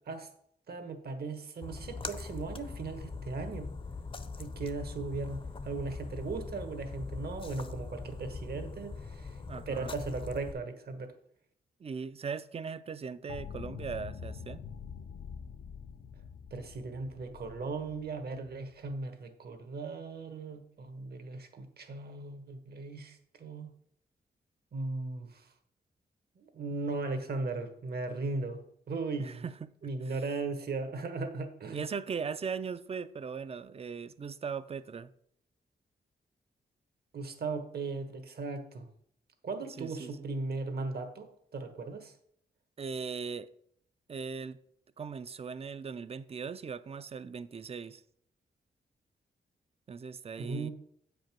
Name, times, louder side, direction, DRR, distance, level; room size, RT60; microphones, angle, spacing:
voice 1, 0.7-3.7 4.4-9.3 9.7-11.1 16.5-23.7 24.7-25.4 26.4-28.6 28.9-29.4 29.8-31.8 37.1-38.9 39.4-41.3 41.5-42.1 50.4-50.7, right 3 dB, 65° right, 1.3 m, -37 dB
Splash splatter, 1.6-10.5, left 4 dB, 30° left, 0.6 m, -41 dB
voice 2, 9.5-10.0 11.8-14.6 29.2-30.2 31.7-35.1 39.8-40.3 42.8-43.5 44.1-44.6 45.0-48.0 49.9-50.7, right 5 dB, 35° right, 0.4 m, -39 dB
sound 1, 13.3-19.0, left 6 dB, 70° left, 0.6 m, -45 dB
8.1 x 5.2 x 6.0 m
wide cardioid pair, 110°, 18 cm